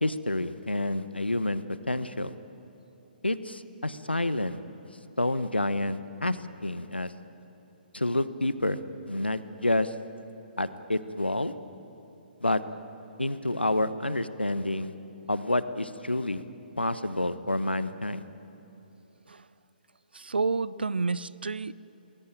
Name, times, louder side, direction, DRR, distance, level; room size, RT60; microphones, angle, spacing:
voice 1, 0.0-2.3 3.2-4.6 5.2-7.1 7.9-8.8 9.1-9.9 10.6-11.5 12.4-12.6 13.2-14.9 15.3-16.4 16.8-18.2, left 1 dB, 90° left, 13 dB, 1.2 m, -28 dB
voice 2, 20.1-21.7, right 4 dB, 75° right, 20 dB, 0.7 m, -29 dB
26.5 x 21.0 x 9.1 m, 3.0 s
figure-of-eight pair, 130°, 5 cm